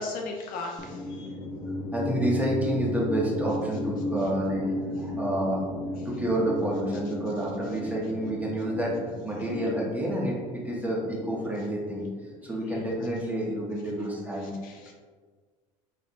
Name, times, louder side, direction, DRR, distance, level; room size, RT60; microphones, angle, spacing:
voice 1, 0.0-1.4 12.6-12.9 14.4-14.9, left 3 dB, 55° left, 1 dB, 0.6 m, -37 dB
sound 1, 0.8-12.9, left 1 dB, 15° left, 0.8 m, -35 dB
voice 2, 1.9-5.6 6.0-12.1 12.4-14.9, right 1 dB, 10° right, -4 dB, 1.2 m, -29 dB
4.2 x 3.2 x 2.6 m, 1.5 s
hypercardioid pair, 85°, 17 cm